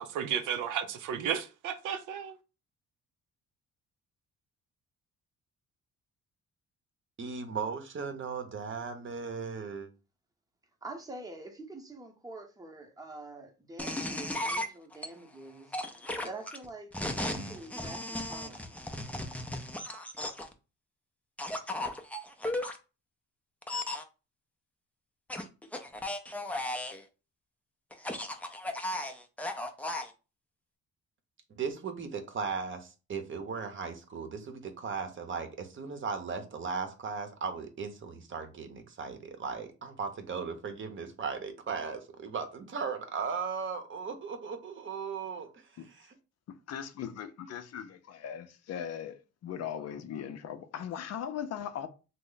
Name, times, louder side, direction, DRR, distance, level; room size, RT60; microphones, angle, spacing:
voice 1, 0.0-2.4, right 8 dB, 80° right, 0.5 m, -33 dB
voice 2, 7.2-9.9 31.6-46.1, right 5 dB, 40° right, 0.8 m, -37 dB
voice 3, 10.8-15.8 16.2-18.6, right 2 dB, 10° right, 0.8 m, -46 dB
sound 1, 13.8-15.1 15.7-20.5 21.4-22.8 23.6-24.0 25.3-27.0 27.9-30.1, left 1 dB, 5° left, 0.4 m, -35 dB
voice 4, 46.5-51.9, left 9 dB, 60° left, 0.5 m, -39 dB
3.1 x 2.1 x 3.8 m
cardioid pair, 90°, 30 cm